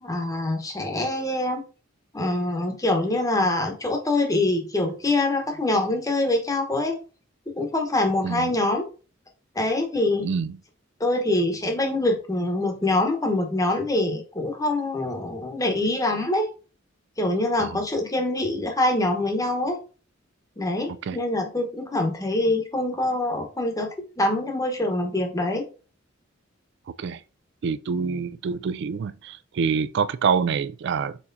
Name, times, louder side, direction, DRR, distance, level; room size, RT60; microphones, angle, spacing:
voice 1, 0.0-1.6 2.1-7.0 7.5-8.9 9.5-10.3 11.0-16.5 17.2-19.8 20.6-25.7, left 2 dB, 15° left, 0.9 m, -24 dB
voice 2, 10.2-10.6 17.6-17.7 21.0-21.2 27.0-27.2 27.6-31.2, right 6 dB, 60° right, 0.3 m, -26 dB
4.4 x 4.2 x 2.6 m
head